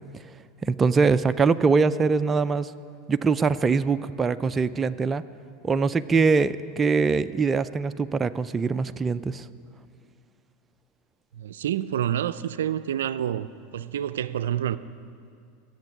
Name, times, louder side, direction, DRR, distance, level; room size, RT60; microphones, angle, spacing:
voice 1, 0.6-2.7 3.1-5.2 5.6-9.5, right 4 dB, 20° right, 0.4 m, -23 dB
voice 2, 11.3-14.8, right 10 dB, 85° right, 0.4 m, -28 dB
14.5 x 7.7 x 9.4 m
hypercardioid pair, 105°, 0 cm